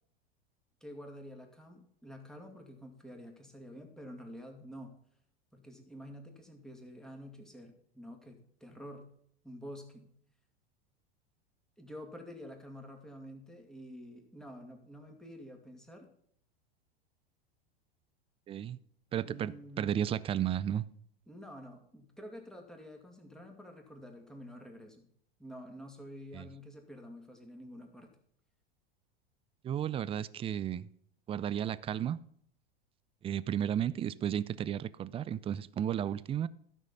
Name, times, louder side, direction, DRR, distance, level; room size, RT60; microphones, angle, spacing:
voice 1, 0.8-4.9 5.5-9.1 9.4-10.1 11.8-16.1 19.2-20.0 21.3-25.1 25.4-28.1, equal, ahead, 2.3 m, -49 dB
voice 2, 18.5-18.8 19.1-20.8 26.3-26.5 29.6-30.9 31.3-32.2 33.2-36.5, right 10 dB, 20° right, 0.4 m, -33 dB
13.0 x 6.3 x 5.5 m
hypercardioid pair, 100°, 31 cm